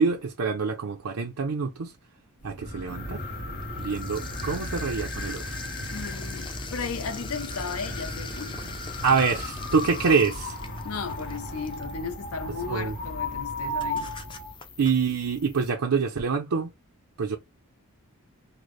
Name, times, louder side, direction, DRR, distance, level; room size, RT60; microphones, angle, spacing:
voice 1, 0.0-1.9 2.4-3.3 3.8-5.6 9.0-10.6 12.7-12.9 14.8-16.7 17.2-17.4, right 5 dB, 75° right, 0.6 m, -26 dB
sound 1, 2.4-14.5, left 1 dB, 40° left, 1.8 m, -36 dB
sound 2, 2.9-15.7, left 3 dB, 20° left, 0.5 m, -41 dB
voice 2, 5.9-8.6 10.8-14.1, left 5 dB, 70° left, 0.6 m, -35 dB
3.9 x 2.0 x 3.1 m
head